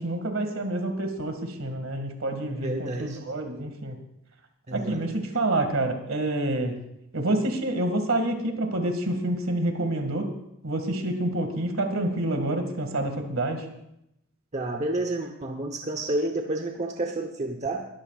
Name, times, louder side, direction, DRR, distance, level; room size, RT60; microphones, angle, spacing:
voice 1, 0.0-4.0 4.7-6.8 7.1-10.3 10.6-13.7, right 1 dB, 65° right, 5 dB, 2.1 m, -28 dB
voice 2, 2.4-3.2 4.7-5.0 14.5-17.9, right 2 dB, 35° right, 3 dB, 1.0 m, -30 dB
21.5 x 14.0 x 2.4 m, 0.82 s
head